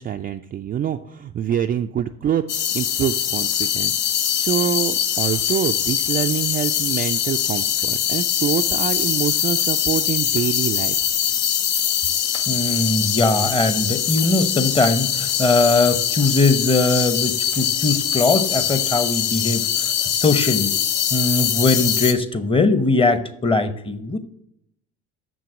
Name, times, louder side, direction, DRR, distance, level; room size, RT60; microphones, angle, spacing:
voice 1, 0.0-2.4 2.7-11.0, right 9 dB, 25° right, 6 dB, 0.4 m, -25 dB
sound 1, 2.5-22.1, left 9 dB, 65° left, 0.9 m, -22 dB
voice 2, 12.5-20.7 21.1-24.2, left 2 dB, 15° left, 11 dB, 0.9 m, -20 dB
6.8 x 6.1 x 6.1 m, 0.74 s
figure-of-eight pair, 55°, 37 cm